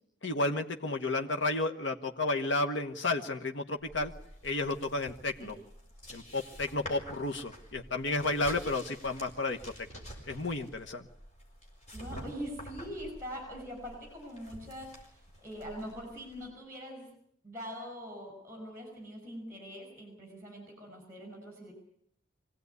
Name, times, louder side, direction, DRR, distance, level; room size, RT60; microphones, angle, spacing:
voice 1, 0.2-4.1 4.4-5.5 6.1-9.7 10.3-11.0, left 2 dB, 65° left, 4 dB, 1.3 m, -32 dB
sound 1, 3.8-16.5, equal, 35° left, 5.6 m, -49 dB
voice 2, 11.9-17.1 17.4-21.7, equal, 15° right, 3 dB, 5.9 m, -43 dB
24.5 x 17.5 x 9.6 m, 0.70 s
head